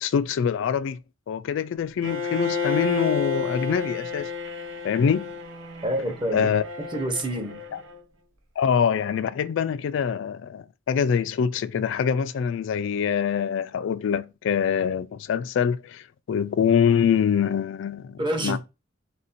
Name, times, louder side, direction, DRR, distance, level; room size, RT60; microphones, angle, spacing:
voice 1, 0.0-1.0 1.3-4.3 4.8-5.3 6.3-6.6 7.7-7.8 8.6-18.6, left 7 dB, 65° left, 0.3 m, -24 dB
Bowed string instrument, 2.0-8.0, left 5 dB, 75° right, 0.8 m, -31 dB
voice 2, 5.8-6.5 6.9-7.6 18.2-18.6, right 1 dB, 25° right, 0.8 m, -27 dB
3.7 x 2.6 x 4.2 m
head